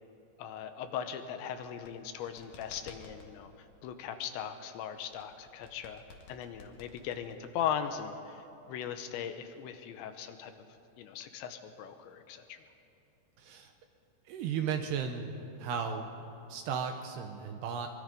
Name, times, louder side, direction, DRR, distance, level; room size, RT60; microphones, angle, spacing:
voice 1, 0.4-6.0 6.3-10.5 11.0-12.6, left 8 dB, 75° left, 8 dB, 3.0 m, -39 dB
sound 1, 1.6-3.3 5.1-7.7, left 4 dB, 55° left, 2.5 m, -54 dB
voice 2, 13.4-13.7 14.3-15.3 15.6-16.1 16.5-17.9, right 7 dB, 75° right, 5 dB, 2.6 m, -35 dB
24.0 x 22.5 x 5.3 m, 3.0 s
omnidirectional pair, 5.5 m